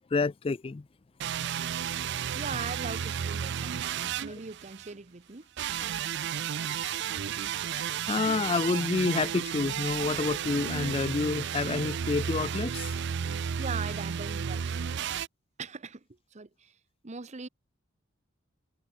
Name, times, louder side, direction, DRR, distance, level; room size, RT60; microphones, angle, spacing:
voice 1, 0.1-0.8 7.1-7.2 7.7-12.9, left 4 dB, 30° left, 0.4 m, -29 dB
sound 1, 1.2-4.9 5.6-15.3, right 8 dB, 60° right, 0.4 m, -33 dB
voice 2, 2.3-5.5 13.6-14.9 15.6-16.0 16.3-16.8 17.0-17.5, right 4 dB, 35° right, 0.9 m, -40 dB
head